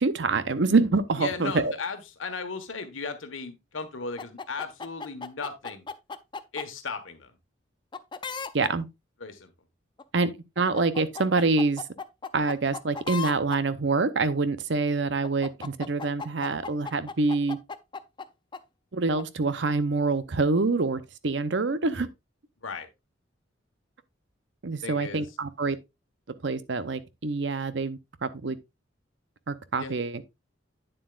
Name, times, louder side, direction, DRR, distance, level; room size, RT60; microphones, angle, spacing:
voice 1, 0.0-1.7 8.5-8.8 10.1-10.3 10.6-11.8 12.3-17.6 18.9-22.1 24.6-25.8 26.4-28.6 29.5-30.2, right 3 dB, 65° right, 0.7 m, -26 dB
voice 2, 1.2-5.9 6.5-7.3 9.2-9.5 22.6-22.9 24.8-25.3 29.8-29.9, left 4 dB, 85° left, 1.4 m, -36 dB
sound 1, 4.2-6.6 7.9-8.7 10.0-10.3 10.6-13.6 15.2-18.3 18.5-18.6 19.2-19.3, left 5 dB, 25° left, 0.4 m, -36 dB
9.2 x 7.3 x 2.4 m
head